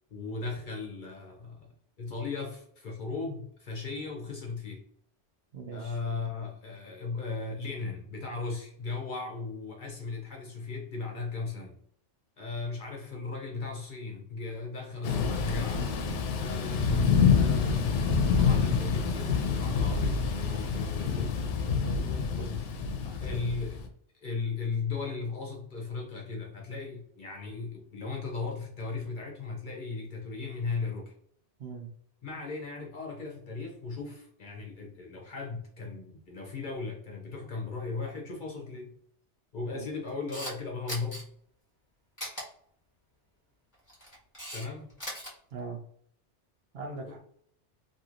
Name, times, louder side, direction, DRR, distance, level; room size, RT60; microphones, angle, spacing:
voice 1, 0.1-1.7 2.0-4.8 5.7-11.7 12.4-15.9 16.4-21.3 22.2-22.3 23.2-23.8 24.1-31.1 32.2-38.9 39.5-41.3 44.5-44.9 47.0-47.2, left 4 dB, 50° left, 0 dB, 0.7 m, -36 dB
voice 2, 5.5-6.0 20.6-20.7 21.6-22.6 23.0-23.5 31.6-31.9 39.7-39.9 45.5-45.8 46.7-47.2, right 4 dB, 60° right, 1 dB, 0.8 m, -41 dB
Thunder / Rain, 15.0-23.9, left 6 dB, 75° left, 0.9 m, -27 dB
Camera, 40.1-40.5 40.9-41.2 42.2-42.4 43.7-44.7 44.9-45.3, equal, 15° left, 1.2 m, -38 dB
3.0 x 2.7 x 2.4 m, 0.64 s
omnidirectional pair, 1.2 m